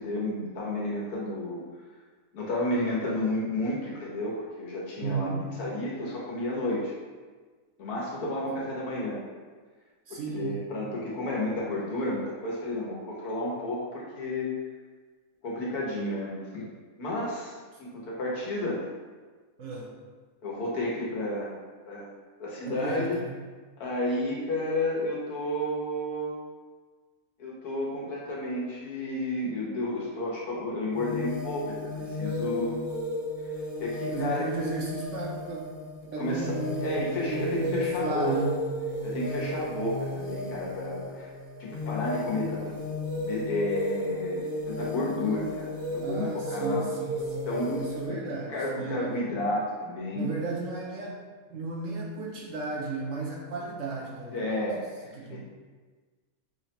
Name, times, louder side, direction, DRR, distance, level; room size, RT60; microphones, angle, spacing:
voice 1, 0.0-1.6 2.3-5.3 5.6-6.9 7.8-9.2 10.1-14.6 15.4-16.7 17.0-17.5 17.8-18.8 20.4-21.6 21.8-22.1 22.4-23.2 23.8-26.4 27.4-32.8 33.8-34.5 36.2-38.4 39.0-41.3 41.6-42.7 43.1-46.9 47.5-47.8 48.1-50.3 54.3-55.4, left 1 dB, 85° left, -5 dB, 1.5 m, -31 dB
voice 2, 5.0-5.5 10.1-10.7 19.6-19.9 22.7-23.4 34.1-35.7 36.0-37.0 37.3-38.6 46.0-49.3 50.1-51.2 51.5-54.6 55.2-55.4, right 4 dB, 65° right, -2 dB, 0.8 m, -34 dB
sound 1, 30.9-48.1, left 2 dB, 50° left, 0.6 m, -34 dB
5.6 x 2.1 x 2.8 m, 1.4 s
omnidirectional pair, 1.6 m